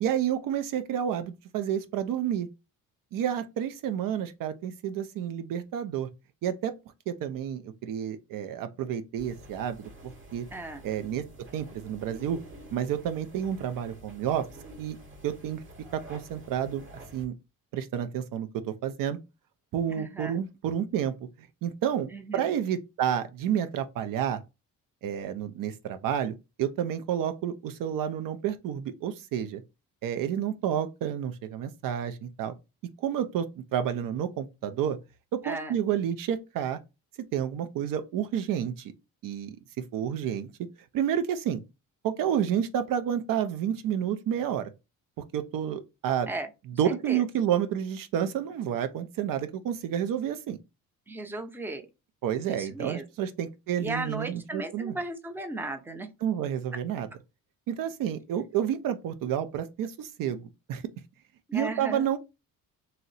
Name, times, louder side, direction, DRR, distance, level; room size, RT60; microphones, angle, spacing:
voice 1, 0.0-2.5 3.1-6.1 6.4-6.7 7.1-10.5 10.8-11.3 11.5-12.4 12.7-14.5 14.8-15.0 15.2-15.6 15.9-16.9 17.1-17.3 17.7-19.2 19.7-21.1 21.6-24.4 25.0-29.6 30.0-32.5 33.0-35.0 35.3-36.8 37.3-38.9 39.2-39.6 39.9-40.5 40.9-41.6 42.0-44.7 45.3-46.3 46.8-50.6 52.2-55.0 56.2-57.1 57.7-60.4 60.7-60.8 61.5-62.2, right 9 dB, 70° right, 0.5 m, -30 dB
sound 1, 9.2-17.3, right 1 dB, 35° right, 1.0 m, -49 dB
voice 2, 10.5-10.8 20.0-20.4 22.1-22.6 35.4-35.8 46.3-46.5 46.8-47.2 51.1-51.9 52.5-53.0 53.8-56.1 61.5-62.1, right 2 dB, 5° right, 0.5 m, -36 dB
2.7 x 2.0 x 3.9 m
cardioid pair, 95°, 35 cm